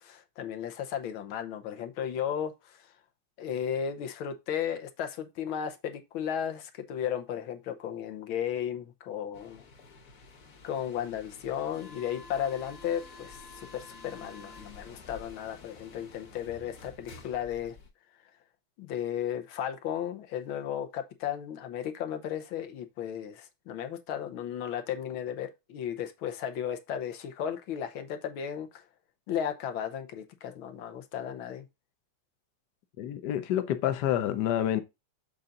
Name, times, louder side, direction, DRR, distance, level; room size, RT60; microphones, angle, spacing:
voice 1, 0.0-2.9 3.4-9.6 10.6-17.8 18.8-28.8 29.3-31.7, left 9 dB, 80° left, 1.7 m, -35 dB
sound 1, 9.3-17.9, left 3 dB, 45° left, 1.4 m, -50 dB
voice 2, 33.0-34.8, left 11 dB, 65° left, 1.2 m, -28 dB
7.1 x 3.9 x 3.7 m
omnidirectional pair, 2.2 m